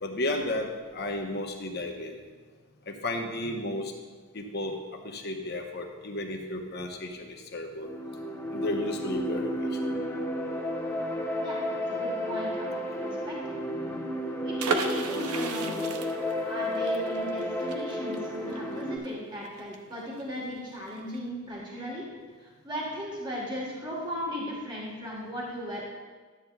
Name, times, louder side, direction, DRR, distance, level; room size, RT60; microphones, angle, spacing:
voice 1, 0.0-0.7 0.9-2.2 2.9-3.9 4.3-4.8 5.0-7.9 8.5-9.9, left 1 dB, 45° left, 2 dB, 0.9 m, -33 dB
sound 1, 7.8-19.0, equal, 10° left, 0.7 m, -32 dB
voice 2, 11.4-13.5 14.4-15.9 16.4-22.1 22.4-25.8, equal, 20° right, -4 dB, 1.4 m, -37 dB
sound 2, 14.6-20.2 20.5-20.6 20.9-21.2, right 5 dB, 85° right, 0.7 m, -34 dB
12.0 x 8.4 x 2.3 m, 1.4 s
head